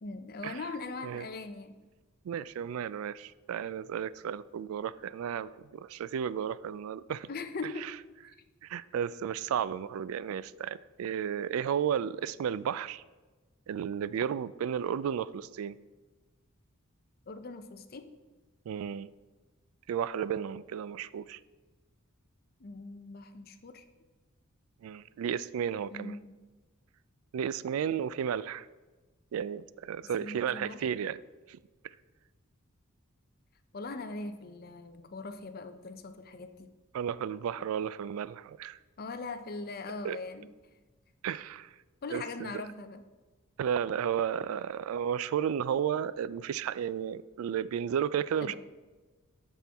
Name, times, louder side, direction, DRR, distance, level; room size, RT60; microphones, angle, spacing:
voice 1, 0.0-1.8 7.3-7.9 17.3-18.1 22.6-23.8 25.9-26.4 30.2-30.8 33.7-36.7 39.0-40.5 42.0-43.0 48.4-48.5, left 3 dB, 45° left, 9 dB, 0.6 m, -40 dB
voice 2, 2.2-7.3 7.8-7.9 8.6-13.0 13.7-15.8 18.7-19.1 19.9-21.4 24.8-26.2 27.3-28.7 29.3-31.2 31.5-31.6 36.9-38.8 40.0-40.2 41.2-41.7 42.1-42.6 43.6-48.5, right 8 dB, 75° right, 17 dB, 0.3 m, -33 dB
12.5 x 4.3 x 3.5 m, 1.2 s
head